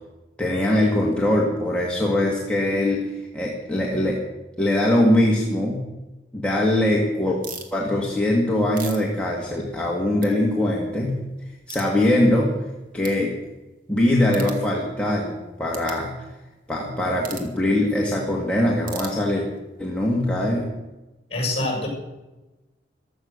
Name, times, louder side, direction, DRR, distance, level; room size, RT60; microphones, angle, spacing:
voice 1, 0.4-4.2 4.6-5.9 6.3-7.4 7.7-11.2 11.7-12.5 12.9-13.3 13.9-16.1 16.7-19.4 19.8-20.7, left 1 dB, 5° left, -3 dB, 2.2 m, -22 dB
sound 1, 7.4-7.7 8.4-9.9 10.2-10.3 10.8-10.9 11.7-11.9 12.5-12.6 13.0-13.2 14.3-14.6 15.7-16.0 17.2-17.5 18.8-19.6, right 6 dB, 50° right, 2.3 m, -38 dB
voice 2, 21.3-21.9, left 2 dB, 35° left, 1 dB, 7.4 m, -25 dB
15.5 x 13.0 x 6.6 m, 1.1 s
head